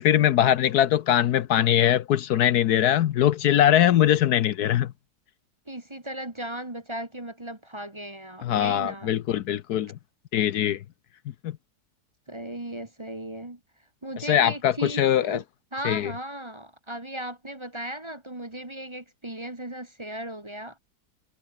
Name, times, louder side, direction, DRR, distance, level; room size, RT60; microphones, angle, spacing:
voice 1, 0.0-4.9 8.4-9.9 10.3-10.8 14.3-15.4 15.8-16.1, left 11 dB, 70° left, 1.2 m, -21 dB
voice 2, 5.7-9.1 12.3-13.6 14.0-15.4 15.7-20.8, right 1 dB, 15° right, 1.6 m, -36 dB
omnidirectional pair, 1.8 m